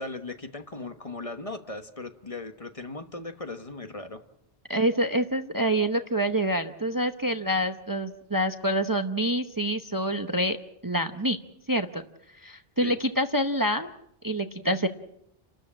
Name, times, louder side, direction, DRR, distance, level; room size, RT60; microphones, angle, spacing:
voice 1, 0.0-4.2 12.8-13.0, left 2 dB, 35° left, 7 dB, 1.3 m, -38 dB
voice 2, 4.7-10.6 10.8-11.4 11.7-12.0 12.4-13.9 14.2-14.9, right 1 dB, 20° right, 8 dB, 0.9 m, -26 dB
30.0 x 13.0 x 8.8 m, 0.80 s
omnidirectional pair, 1.1 m